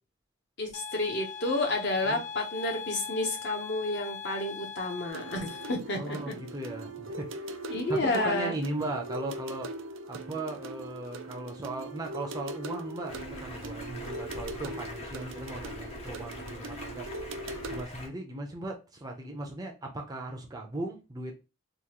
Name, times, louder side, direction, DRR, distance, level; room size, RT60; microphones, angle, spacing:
voice 1, 0.6-6.3 7.7-8.5, left 2 dB, 55° left, 0.9 m, -30 dB
sound 1, 0.7-5.8, left 6 dB, 80° left, 0.5 m, -40 dB
sound 2, 5.1-17.8, right 2 dB, 70° right, 0.5 m, -41 dB
voice 2, 5.9-9.7 10.1-17.1 17.7-21.4, right 2 dB, 20° right, 0.6 m, -37 dB
Stream, 13.1-18.1, left 2 dB, 30° left, 0.6 m, -43 dB
3.7 x 2.5 x 2.9 m
head